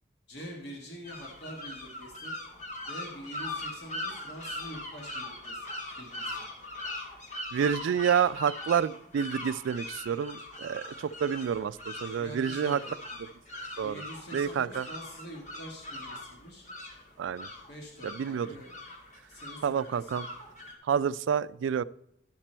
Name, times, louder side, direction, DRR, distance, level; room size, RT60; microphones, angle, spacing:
voice 1, 0.3-2.4 2.9-6.5 12.2-12.9 13.8-16.7 17.7-18.8 19.3-20.1, equal, 55° left, 0 dB, 1.5 m, -45 dB
sound 1, 1.0-20.7, left 1 dB, 40° left, 1.6 m, -41 dB
voice 2, 7.5-12.8 13.8-14.0 14.3-14.9 17.2-17.5 18.2-18.5 19.6-20.3 20.9-21.8, right 7 dB, 80° right, 18 dB, 0.3 m, -28 dB
11.5 x 6.0 x 4.4 m, 0.79 s
head